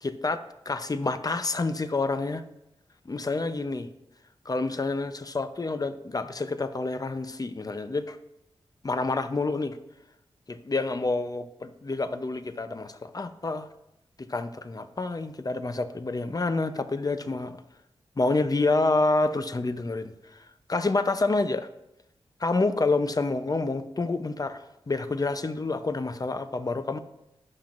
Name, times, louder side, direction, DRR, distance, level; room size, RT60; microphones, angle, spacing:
voice 1, 0.0-2.4 3.1-3.9 4.5-8.2 8.8-9.8 10.5-13.7 14.2-17.6 18.2-20.4 20.7-21.7 22.4-27.0, left 3 dB, 35° left, 0.7 m, -28 dB
17.5 x 5.9 x 2.6 m
cardioid pair, 50°, 11 cm